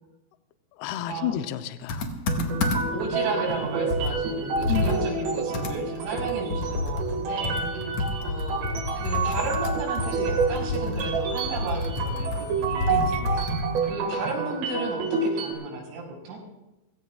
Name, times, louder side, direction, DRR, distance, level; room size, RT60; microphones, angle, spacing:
voice 1, 0.7-2.0 2.4-2.6 4.7-5.0 12.9-13.5, left 11 dB, 80° left, 9 dB, 2.3 m, -32 dB
Computer keyboard, 1.9-3.1 3.5-3.6 3.9-7.2 7.4-13.9, left 3 dB, 60° left, 1.8 m, -29 dB
sound 1, 2.3-15.5, right 5 dB, 70° right, 4.0 m, -29 dB
voice 2, 2.9-7.6 8.2-13.1 13.8-16.4, right 3 dB, 90° right, -2 dB, 6.8 m, -34 dB
29.0 x 15.5 x 2.4 m, 0.97 s
omnidirectional pair, 5.2 m